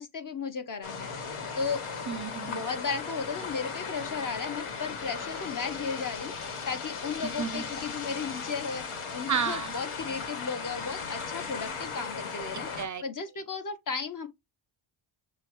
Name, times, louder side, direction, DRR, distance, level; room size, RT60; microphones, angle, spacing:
voice 1, 0.0-1.8 2.5-6.3 6.7-8.8 9.1-12.7 13.0-14.3, left 5 dB, 40° left, 1.0 m, -35 dB
sound 1, 0.8-12.9, left 5 dB, 80° left, 1.5 m, -37 dB
voice 2, 2.1-2.6 7.2-7.6 9.3-9.7 12.5-13.0, right 7 dB, 40° right, 0.5 m, -32 dB
6.7 x 2.3 x 3.0 m
cardioid pair, 80°, 49 cm